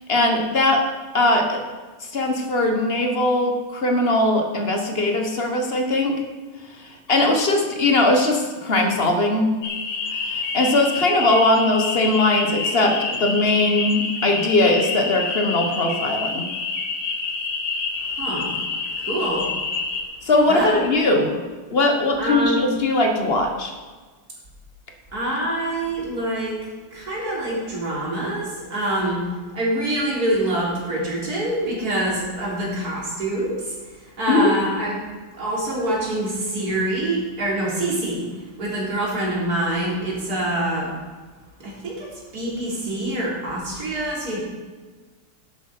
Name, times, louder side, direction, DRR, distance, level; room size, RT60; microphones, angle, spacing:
voice 1, 0.1-0.9 1.1-1.6 2.1-6.2 7.1-9.5 10.1-16.5 20.2-21.4 21.7-23.7 34.3-34.5, left 2 dB, 35° left, 4 dB, 1.2 m, -20 dB
sound 1, 9.6-20.0, left 4 dB, 70° left, 2.1 m, -27 dB
voice 2, 18.1-18.6 19.0-19.5 20.5-21.1 22.2-22.7 25.1-26.6 26.9-29.3 29.5-33.7 34.2-35.0 35.3-38.3 38.6-40.9 41.6-44.4, right 1 dB, 40° right, -4 dB, 3.9 m, -25 dB
11.0 x 8.7 x 6.0 m, 1.4 s
omnidirectional pair, 2.4 m